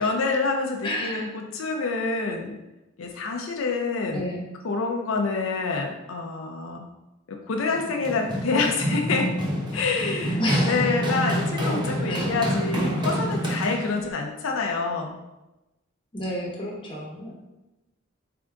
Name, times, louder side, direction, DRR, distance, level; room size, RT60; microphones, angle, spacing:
voice 1, 0.0-2.6 3.0-4.2 4.6-6.9 7.3-9.3 9.7-10.4 10.7-15.2, left 4 dB, 85° left, 2 dB, 0.5 m, -27 dB
voice 2, 0.8-1.3 4.1-4.4 10.4-11.0 12.1-12.3 16.1-17.3, left 1 dB, 25° left, -3 dB, 1.0 m, -30 dB
Run, 7.7-14.1, equal, 20° right, 0.9 m, -27 dB
3.8 x 3.4 x 3.7 m, 0.99 s
head